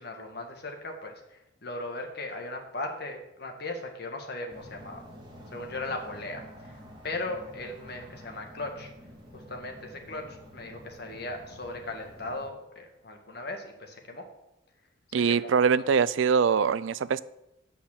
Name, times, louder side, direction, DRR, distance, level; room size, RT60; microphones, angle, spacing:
voice 1, 0.0-5.0 5.5-8.9 9.3-14.2 15.3-15.7, left 2 dB, 55° left, 3 dB, 1.7 m, -38 dB
sound 1, 4.5-12.5, equal, 25° right, 1.8 m, -49 dB
voice 2, 15.1-17.2, right 6 dB, 80° right, 17 dB, 0.4 m, -23 dB
8.7 x 5.7 x 7.3 m, 0.87 s
head